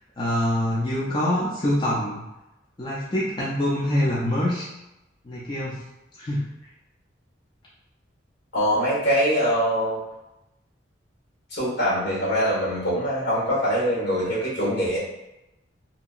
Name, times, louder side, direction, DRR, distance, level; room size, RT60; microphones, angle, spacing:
voice 1, 0.2-2.2 2.8-4.7 5.2-5.8 6.2-6.4, left 1 dB, 25° left, -7 dB, 0.5 m, -25 dB
voice 2, 8.5-10.0 11.5-15.0, equal, 60° left, -6 dB, 1.4 m, -23 dB
2.8 x 2.7 x 2.4 m, 0.94 s
head